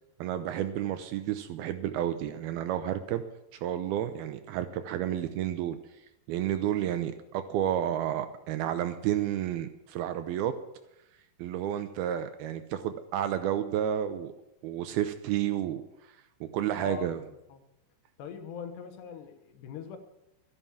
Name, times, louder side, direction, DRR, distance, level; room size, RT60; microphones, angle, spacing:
voice 1, 0.2-3.2 3.6-5.8 6.3-10.5 11.4-14.3 14.6-15.8 16.4-17.2, right 11 dB, 80° right, 9 dB, 2.3 m, -31 dB
voice 2, 16.8-17.6 18.2-20.0, left 8 dB, 80° left, 8 dB, 3.3 m, -42 dB
13.5 x 11.0 x 7.2 m, 0.88 s
omnidirectional pair, 4.9 m